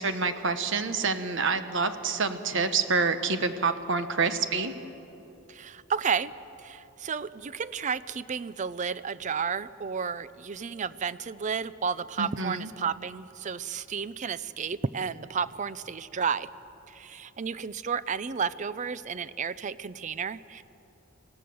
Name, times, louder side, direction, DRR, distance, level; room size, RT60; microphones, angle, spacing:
voice 1, 0.0-4.7 12.2-12.7, right 4 dB, 65° right, 9 dB, 1.2 m, -27 dB
voice 2, 5.5-6.3 6.6-16.5 16.9-20.6, right 6 dB, 35° right, 16 dB, 0.5 m, -32 dB
25.0 x 17.0 x 7.0 m, 3.0 s
head